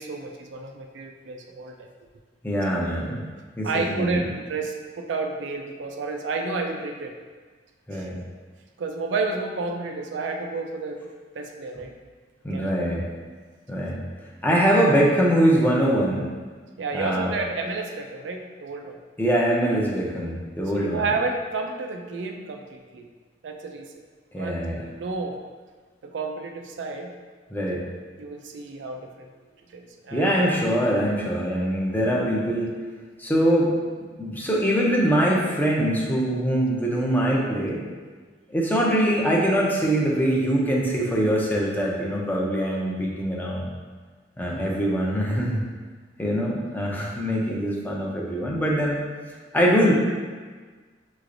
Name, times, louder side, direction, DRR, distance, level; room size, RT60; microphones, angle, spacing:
voice 1, 0.0-1.9 2.8-3.2 3.6-7.1 7.9-8.2 8.8-11.0 11.3-11.9 12.5-12.9 16.8-19.0 20.7-23.1 23.4-23.9 24.4-25.4 26.0-27.1 28.2-29.3 29.7-30.3, right 3 dB, 70° right, 3 dB, 0.4 m, -31 dB
voice 2, 2.4-3.2 3.6-4.2 7.9-8.2 12.4-13.1 13.7-14.0 14.4-16.3 16.9-17.3 19.2-21.0 24.3-24.9 27.5-27.8 30.1-32.8 33.2-33.8 34.2-37.8 38.5-43.7 44.4-45.6 46.2-49.0 49.5-49.9, equal, 10° left, -3 dB, 0.5 m, -23 dB
5.6 x 3.1 x 2.5 m, 1.5 s
head